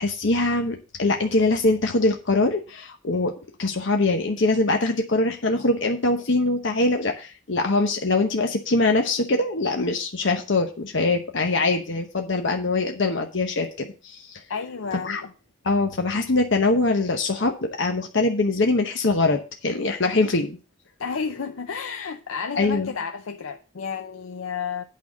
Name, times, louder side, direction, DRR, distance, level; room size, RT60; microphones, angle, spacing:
voice 1, 0.0-3.3 3.6-14.4 15.0-15.2 15.6-20.6 22.5-22.9, left 2 dB, 60° left, 1.0 m, -23 dB
voice 2, 14.5-15.3 21.0-24.8, left 6 dB, 85° left, 0.6 m, -31 dB
8.7 x 5.6 x 6.5 m
head